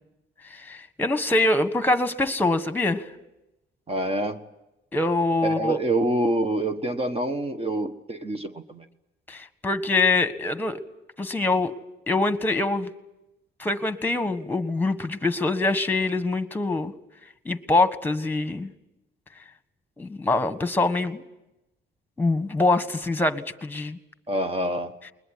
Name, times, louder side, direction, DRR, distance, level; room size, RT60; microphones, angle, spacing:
voice 1, 0.5-3.1 4.9-5.8 9.3-10.8 11.2-11.7 12.1-12.9 13.6-16.9 17.4-18.7 20.0-21.2 22.2-24.0, left 2 dB, 10° left, 11 dB, 1.6 m, -24 dB
voice 2, 3.9-4.4 5.4-8.8 24.3-24.9, right 1 dB, 30° right, 8 dB, 1.3 m, -26 dB
21.5 x 20.5 x 9.9 m, 0.95 s
cardioid pair, 90°, 20 cm